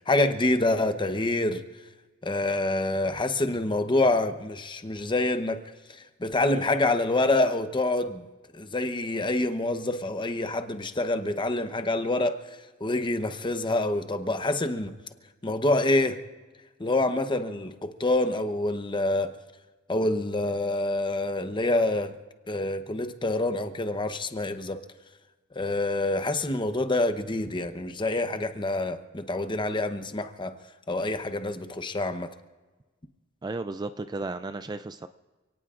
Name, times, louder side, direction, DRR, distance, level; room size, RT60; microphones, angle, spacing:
voice 1, 0.0-1.6 2.2-5.6 5.9-8.2 8.5-14.9 15.4-16.2 16.8-19.3 19.9-22.2 22.5-24.8 25.5-30.5 30.9-32.3, left 2 dB, 25° left, 9 dB, 0.9 m, -27 dB
voice 2, 33.4-35.1, right 3 dB, 20° right, 10 dB, 0.4 m, -34 dB
29.0 x 18.0 x 2.5 m, 1.3 s
head